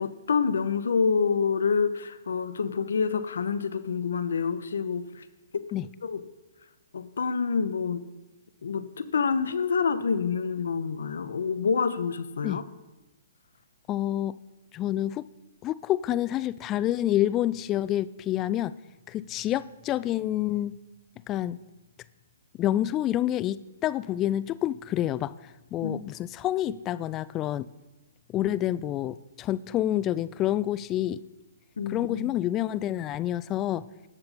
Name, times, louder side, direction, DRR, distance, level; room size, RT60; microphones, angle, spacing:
voice 1, 0.0-5.2 6.0-6.2 6.9-8.1 8.6-12.6 25.8-26.1 31.8-32.3, left 5 dB, 70° left, 12 dB, 0.8 m, -27 dB
voice 2, 13.9-14.4 14.7-15.2 15.6-18.7 19.1-20.7 21.3-21.6 22.6-27.7 28.3-31.2 31.9-33.8, left 13 dB, 25° left, 18 dB, 0.3 m, -28 dB
18.0 x 6.7 x 4.1 m, 1.0 s
figure-of-eight pair, 130°, 0 cm